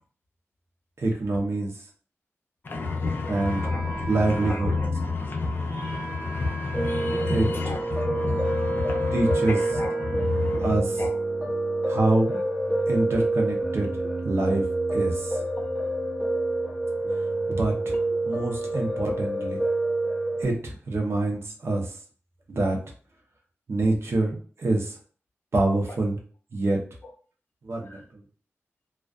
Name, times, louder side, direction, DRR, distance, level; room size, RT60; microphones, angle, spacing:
voice 1, 1.0-1.7 3.3-3.6 4.1-4.7 7.3-7.7 9.1-9.6 10.6-11.0 11.9-12.4 12.9-13.9 14.2-14.6 14.9-15.4 17.5-18.0 18.2-19.6 20.4-21.9 22.5-22.8 23.7-24.9 25.5-26.2 26.5-26.8 27.6-28.0, right 2 dB, 60° right, 1 dB, 0.7 m, -25 dB
voice 2, 2.6-11.1 12.3-12.4 27.9-28.0, left 4 dB, 45° left, 1 dB, 0.6 m, -30 dB
Wind instrument woodwind instrument, 3.3-11.0, right 3 dB, 80° right, 1.2 m, -40 dB
Piano, 6.7-20.4, right 2 dB, 25° right, 1.0 m, -27 dB
2.3 x 2.2 x 2.4 m, 0.42 s
wide cardioid pair, 105°, 5 cm